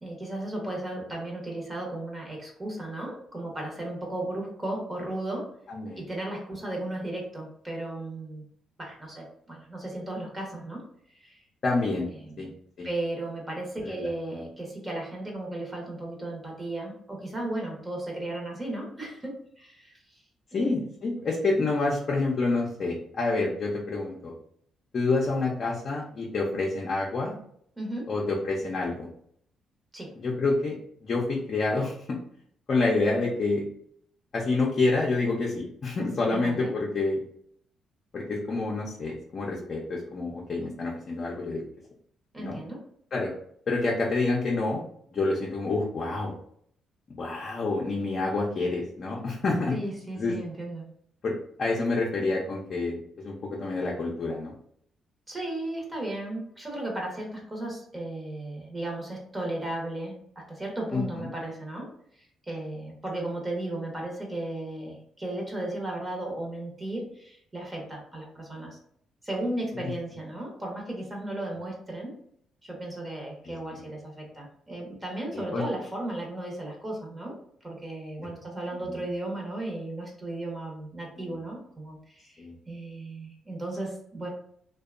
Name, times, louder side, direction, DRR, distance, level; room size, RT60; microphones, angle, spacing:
voice 1, 0.0-5.5 6.0-8.5 8.8-10.8 11.1-11.4 11.7-12.5 12.8-19.9 20.5-20.7 27.8-28.1 29.9-30.1 36.3-36.7 42.3-42.8 49.7-50.9 55.3-60.2 60.5-61.9 62.2-68.8 69.2-72.1 72.6-77.4 77.6-84.3, right 1 dB, 20° right, -1 dB, 0.8 m, -35 dB
voice 2, 5.7-6.0 11.6-12.1 12.4-12.5 12.8-12.9 13.8-14.1 20.5-24.3 24.9-27.3 28.1-29.1 30.2-30.8 31.0-32.2 32.7-33.6 34.3-37.2 38.1-41.6 42.4-42.6 43.1-43.3 43.7-44.8 45.1-46.3 47.1-49.8 50.2-50.4 51.2-54.5 60.9-61.3 75.3-75.6 78.2-78.3 81.2-81.3 82.4-82.5, left 3 dB, 45° left, -3 dB, 0.5 m, -28 dB
2.7 x 2.2 x 2.4 m, 0.67 s
cardioid pair, 90°, 0 cm